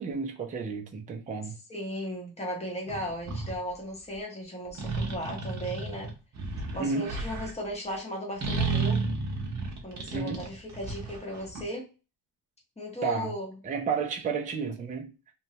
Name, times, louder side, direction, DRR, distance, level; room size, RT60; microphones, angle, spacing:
voice 1, 0.0-1.6 6.8-7.1 10.1-10.4 13.0-13.3 13.6-15.1, right 5 dB, 20° right, 0.3 m, -31 dB
voice 2, 1.7-6.1 6.7-9.0 9.8-11.9 12.8-13.5, equal, 15° left, 0.9 m, -36 dB
sound 1, 2.9-3.6 4.7-7.5 8.4-11.6, right 3 dB, 45° right, 0.7 m, -32 dB
3.0 x 2.2 x 2.7 m
wide cardioid pair, 175°, 40 cm